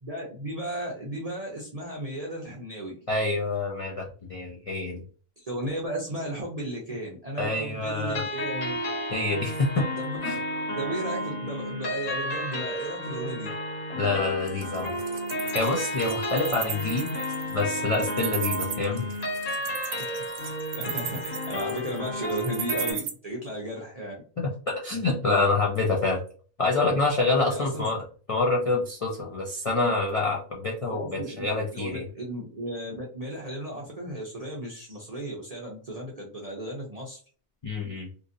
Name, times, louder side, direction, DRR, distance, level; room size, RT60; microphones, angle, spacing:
voice 1, 0.0-2.9 5.4-8.8 10.0-10.2 10.7-13.5 16.5-16.6 20.0-24.2 27.5-27.8 30.9-31.4 31.7-37.2, right 1 dB, 50° right, -3 dB, 0.5 m, -35 dB
voice 2, 3.1-5.0 7.4-8.2 9.1-9.9 10.2-10.4 14.0-14.9 15.5-17.2 17.5-19.1 24.7-26.2 26.6-28.0 28.3-32.0 37.6-38.1, left 3 dB, 60° left, -3 dB, 0.3 m, -26 dB
Piano Rnb., 8.1-22.9, left 1 dB, 85° left, 1.4 m, -32 dB
Wild animals, 14.5-23.1, right 8 dB, 65° right, 0.8 m, -35 dB
2.8 x 2.6 x 2.5 m, 0.41 s
omnidirectional pair, 1.4 m